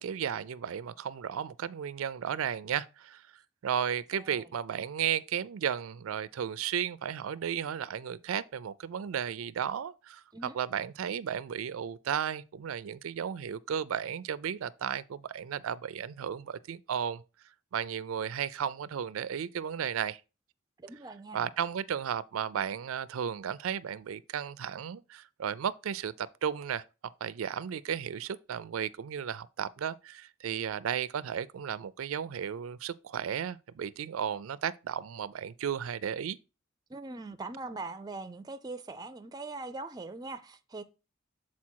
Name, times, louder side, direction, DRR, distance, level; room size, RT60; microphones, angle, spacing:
voice 1, 0.0-3.2 3.6-10.2 10.5-17.2 17.7-20.2 21.3-26.8 27.2-36.4, right 8 dB, 85° right, 0.4 m, -34 dB
voice 2, 4.1-4.5 10.3-10.6 20.8-21.5 36.9-40.8, right 3 dB, 20° right, 0.5 m, -41 dB
7.3 x 4.3 x 4.5 m
head